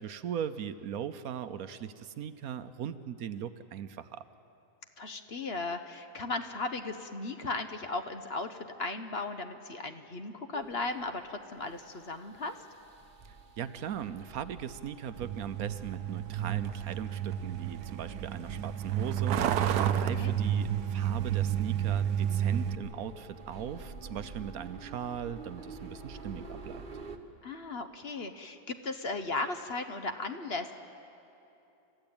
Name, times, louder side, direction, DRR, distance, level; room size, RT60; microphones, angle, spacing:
voice 1, 0.0-4.2 13.3-26.8, right 9 dB, 70° right, 12 dB, 1.2 m, -39 dB
voice 2, 5.0-12.5 20.2-20.3 27.4-30.7, left 3 dB, 45° left, 7 dB, 1.0 m, -36 dB
sound 1, 10.5-27.2, right 3 dB, 35° right, 1.4 m, -48 dB
Truck, 15.1-22.8, right 10 dB, 90° right, 1.3 m, -31 dB
28.5 x 14.5 x 8.8 m, 2.9 s
omnidirectional pair, 1.7 m